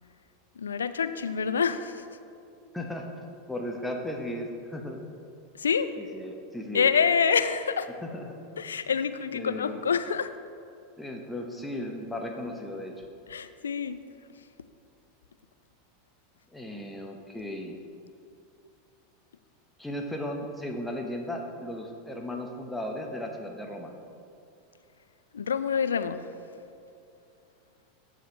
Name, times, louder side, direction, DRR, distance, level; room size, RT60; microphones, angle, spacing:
voice 1, 0.6-2.1 5.5-5.9 6.7-7.9 8.6-10.3 13.3-14.0 25.3-26.3, left 6 dB, 75° left, 11 dB, 0.3 m, -26 dB
voice 2, 2.7-5.0 6.0-6.9 8.0-8.3 9.3-9.8 11.0-13.0 16.5-17.8 19.8-23.9, left 1 dB, 5° left, 2 dB, 1.0 m, -36 dB
14.5 x 5.0 x 3.3 m, 2.5 s
figure-of-eight pair, 85°, 0 cm